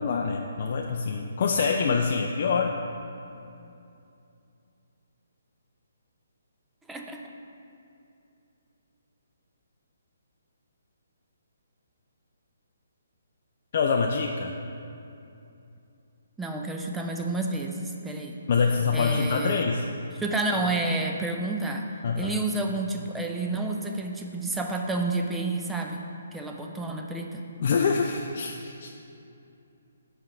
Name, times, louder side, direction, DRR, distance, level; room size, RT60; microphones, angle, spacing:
voice 1, 0.0-2.8 13.7-14.5 18.5-19.9 22.0-22.3 27.6-29.0, left 5 dB, 50° left, 1 dB, 0.4 m, -25 dB
voice 2, 6.9-7.2 16.4-18.4 18.9-19.6 20.2-21.9 22.2-26.0 26.3-27.4, right 2 dB, 5° right, 2 dB, 0.5 m, -30 dB
5.6 x 4.5 x 5.0 m, 2.7 s
figure-of-eight pair, 145°, 0 cm